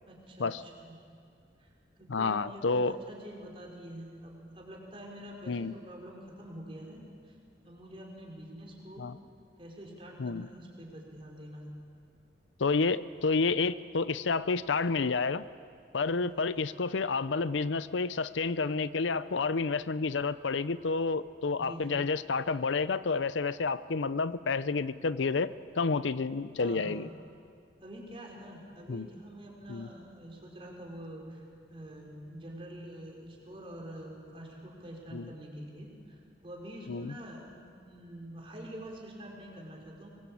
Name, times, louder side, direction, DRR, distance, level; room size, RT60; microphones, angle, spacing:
voice 1, 0.1-1.0 1.6-1.7 2.0-7.4 7.6-9.1 9.6-11.7 16.2-16.4 21.6-22.1 26.6-27.0 27.8-31.4 31.7-40.1, equal, 30° right, -1 dB, 4.8 m, -46 dB
voice 2, 2.1-3.0 5.5-5.7 9.0-9.2 10.2-10.5 12.6-15.4 15.9-27.1 28.9-29.1 29.7-29.9 35.1-35.3 36.9-37.1, left 4 dB, 85° left, 15 dB, 0.6 m, -30 dB
24.5 x 21.0 x 8.6 m, 2.4 s
head